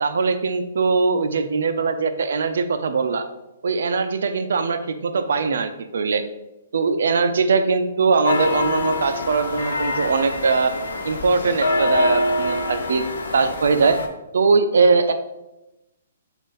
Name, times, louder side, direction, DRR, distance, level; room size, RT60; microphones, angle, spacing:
voice 1, 0.0-3.3 3.6-6.2 6.7-10.7 11.0-13.0 13.3-14.0 14.3-15.1, right 4 dB, 70° right, 9 dB, 0.4 m, -21 dB
sound 1, 8.2-14.1, left 2 dB, 85° left, 0.7 m, -25 dB
5.1 x 2.5 x 3.9 m, 0.95 s
hypercardioid pair, 175°, 0 cm